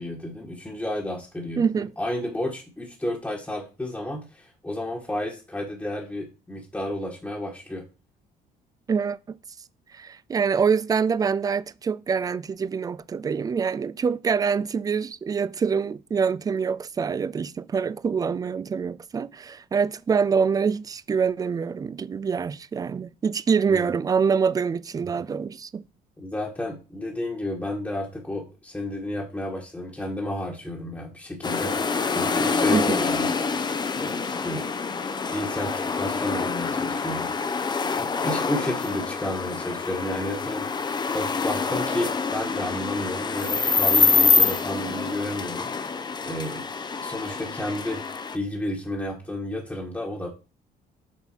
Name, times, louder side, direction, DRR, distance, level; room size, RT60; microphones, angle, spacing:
voice 1, 0.0-1.7 2.0-7.8 23.7-23.9 26.2-31.7 32.1-33.3 33.9-34.7 35.1-37.3 37.8-46.7 47.0-48.0 48.3-50.3, left 1 dB, 10° left, 1.4 m, -32 dB
voice 2, 1.6-1.9 8.9-9.4 9.9-25.8 32.7-33.0, right 6 dB, 20° right, 0.3 m, -25 dB
sound 1, 31.4-48.4, left 4 dB, 25° left, 0.7 m, -26 dB
7.3 x 4.0 x 4.4 m
cardioid pair, 110°, 17 cm